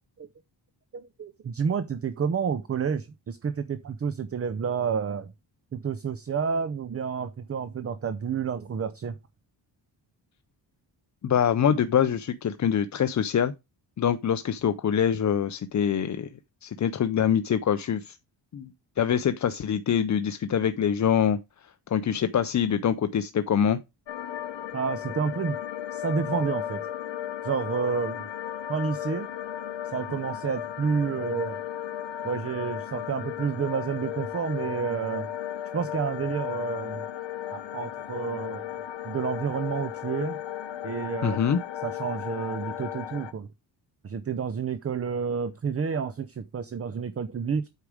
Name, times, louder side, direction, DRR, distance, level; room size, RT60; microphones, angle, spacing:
voice 1, 0.9-5.3 5.7-9.2 24.7-25.6 25.9-26.8 27.4-28.3 28.7-29.3 29.9-31.6 32.2-35.3 35.7-37.0 37.5-38.6 39.0-40.4 40.8-41.4 41.8-43.5 44.0-47.7, right 6 dB, 35° right, 0.6 m, -30 dB
voice 2, 11.2-13.5 14.0-16.3 16.6-18.2 18.5-18.7 19.0-21.4 21.9-23.8 41.2-41.6, left 8 dB, 40° left, 0.5 m, -24 dB
sound 1, 24.1-43.3, left 11 dB, 80° left, 1.0 m, -35 dB
8.2 x 4.9 x 4.9 m
wide cardioid pair, 145°, 44 cm